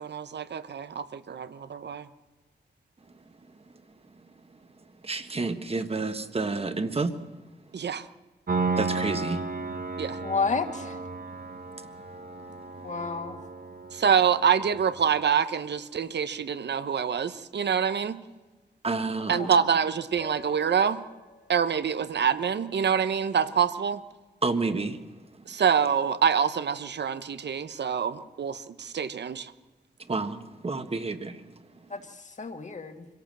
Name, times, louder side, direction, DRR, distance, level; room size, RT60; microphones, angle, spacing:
voice 1, 0.0-2.1 7.7-8.0 10.0-10.2 13.9-18.2 19.3-21.0 21.5-24.0 25.5-29.5, right 7 dB, 90° right, 1.0 m, -26 dB
voice 2, 4.0-7.4 7.9-8.0 8.8-10.1 11.2-12.4 12.7-12.9 18.8-19.6 24.4-25.5 30.0-31.8, right 3 dB, 35° right, 1.5 m, -32 dB
Piano, 8.5-15.2, right 4 dB, 60° right, 1.2 m, -34 dB
voice 3, 10.2-11.0 12.8-13.4 19.3-19.5 31.9-33.1, left 4 dB, 45° left, 1.8 m, -31 dB
Piano 2, 20.2-22.1, left 3 dB, 65° left, 4.6 m, -48 dB
25.5 x 17.0 x 7.6 m
wide cardioid pair, 130°, 17 cm